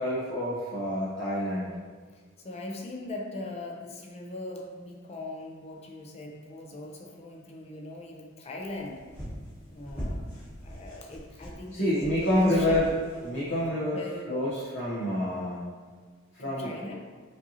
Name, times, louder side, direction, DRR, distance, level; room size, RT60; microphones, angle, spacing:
voice 1, 0.0-1.7 11.7-13.0 13.2-14.0 14.3-15.7 16.3-16.7, left 1 dB, 60° left, -9 dB, 0.8 m, -28 dB
voice 2, 2.1-9.0 9.7-10.3 10.6-12.7 13.9-14.6 16.4-17.0, left 2 dB, 30° left, 0 dB, 0.5 m, -39 dB
sound 1, 8.6-13.7, equal, 10° left, 1.1 m, -41 dB
5.2 x 2.7 x 2.7 m, 1.6 s
head